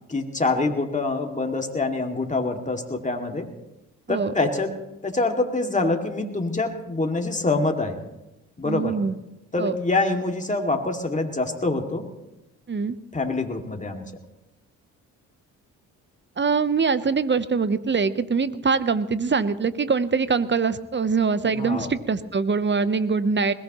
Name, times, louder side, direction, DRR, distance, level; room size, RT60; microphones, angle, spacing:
voice 1, 0.1-3.5 4.1-4.7 5.0-8.0 8.6-8.9 9.5-12.1 13.1-14.0 21.4-21.9, left 3 dB, 20° left, 3 dB, 2.4 m, -25 dB
voice 2, 8.6-9.2 9.6-9.7 12.7-13.0 16.4-23.5, right 5 dB, 30° right, 14 dB, 0.9 m, -23 dB
21.0 x 18.0 x 3.1 m, 0.96 s
supercardioid pair, 50°, 39 cm